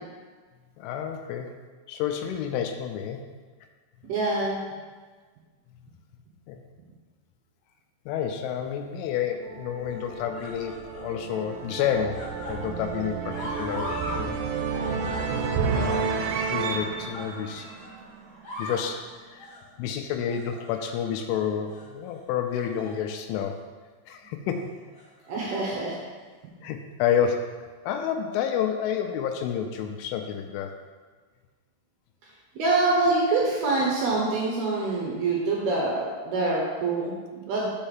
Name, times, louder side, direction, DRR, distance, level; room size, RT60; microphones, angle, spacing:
voice 1, 0.8-1.5 1.9-3.2 6.5-6.6 8.1-14.4 15.8-16.2 16.5-17.7 18.6-23.6 24.1-24.7 26.6-30.7, left 8 dB, 80° left, 5 dB, 2.9 m, -29 dB
voice 2, 4.1-4.6 25.3-26.0 32.6-37.7, right 3 dB, 70° right, -3 dB, 2.5 m, -25 dB
sound 1, 8.4-8.9 9.8-11.1 11.5-14.2 14.5-18.0 18.3-18.9 19.4-19.7 20.3-21.3 21.7-21.9 22.5-23.0 23.4-23.6 24.7-25.3 26.2-26.3, left 1 dB, 50° left, 2.3 m, -41 dB
sound 2, 9.4-18.5, right 5 dB, 85° right, 3.2 m, -31 dB
6.4 x 5.5 x 7.2 m, 1.4 s
omnidirectional pair, 5.7 m